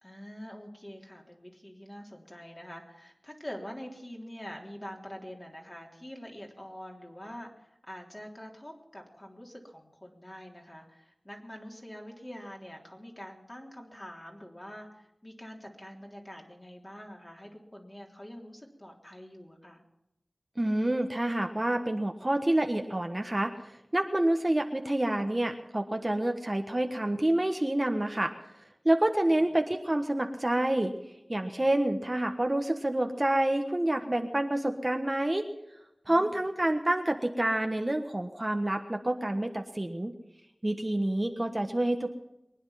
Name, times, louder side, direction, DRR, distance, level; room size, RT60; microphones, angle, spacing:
voice 1, 0.0-19.8 29.3-29.5 36.1-36.4, equal, 25° left, 0 dB, 3.5 m, -45 dB
voice 2, 20.6-28.3 28.8-30.9 31.3-35.4 36.1-40.1 40.6-42.1, right 1 dB, 30° right, 5 dB, 1.4 m, -28 dB
23.5 x 10.0 x 5.8 m, 0.89 s
wide cardioid pair, 45°, 0 cm